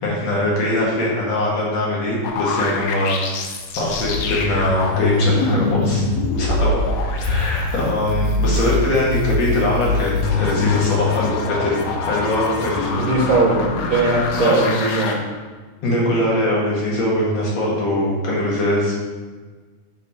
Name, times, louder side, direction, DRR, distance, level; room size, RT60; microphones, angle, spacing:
voice 1, 0.0-3.1 3.8-6.0 6.4-13.0 14.4-14.7 15.8-18.9, left 1 dB, 60° left, -4 dB, 2.9 m, -21 dB
sound 1, 2.2-15.2, left 4 dB, 75° left, 2.1 m, -23 dB
voice 2, 13.0-15.2, right 3 dB, 70° right, -1 dB, 2.1 m, -19 dB
6.9 x 5.2 x 4.6 m, 1.4 s
omnidirectional pair, 3.4 m